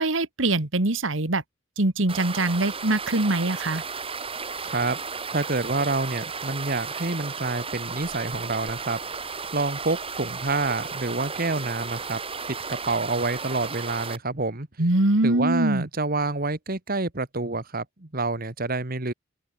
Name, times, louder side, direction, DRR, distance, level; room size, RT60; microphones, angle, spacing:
voice 1, 0.0-1.4 1.8-3.8 14.8-15.9, right 2 dB, 65° right, 1.9 m, -23 dB
sound 1, 2.1-14.2, right 5 dB, 25° right, 4.9 m, -34 dB
voice 2, 4.6-5.0 5.3-9.0 9.5-12.2 12.5-14.7 15.2-19.1, right 3 dB, 45° right, 1.8 m, -28 dB
open air
head